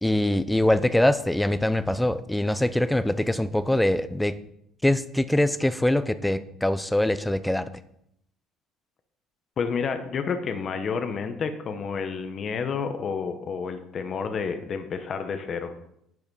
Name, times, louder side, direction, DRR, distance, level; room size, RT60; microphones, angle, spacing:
voice 1, 0.0-4.4 4.8-7.6, left 1 dB, 5° left, 13 dB, 0.4 m, -23 dB
voice 2, 9.6-15.7, left 5 dB, 35° left, 7 dB, 0.9 m, -30 dB
10.5 x 5.7 x 5.4 m, 0.75 s
cardioid pair, 160°, 0 cm